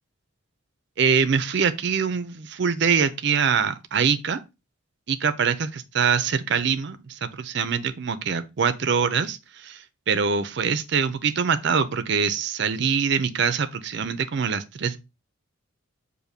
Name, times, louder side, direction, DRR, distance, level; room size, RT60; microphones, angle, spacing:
voice 1, 1.0-4.4 5.1-15.0, right 6 dB, 55° right, 0.4 m, -24 dB
6.5 x 2.6 x 2.6 m
head